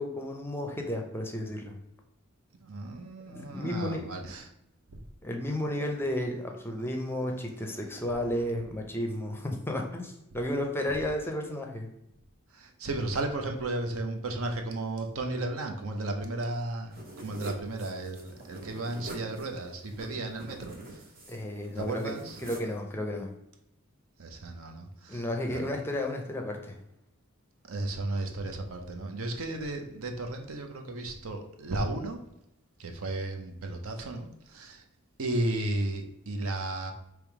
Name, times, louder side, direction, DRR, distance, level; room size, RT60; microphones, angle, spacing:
voice 1, 0.0-1.7 3.3-4.3 5.2-11.9 21.3-22.1 22.4-23.3 25.1-26.8, left 1 dB, 10° left, 2 dB, 0.5 m, -33 dB
voice 2, 2.6-4.5 4.9-5.0 7.9-8.1 12.5-21.0 21.8-22.4 24.2-25.7 27.7-32.2 32.8-34.8 35.2-36.9, right 2 dB, 70° right, 5 dB, 0.7 m, -34 dB
sound 1, 16.9-22.8, right 2 dB, 45° right, 0.9 m, -45 dB
3.4 x 3.1 x 4.6 m, 0.80 s
head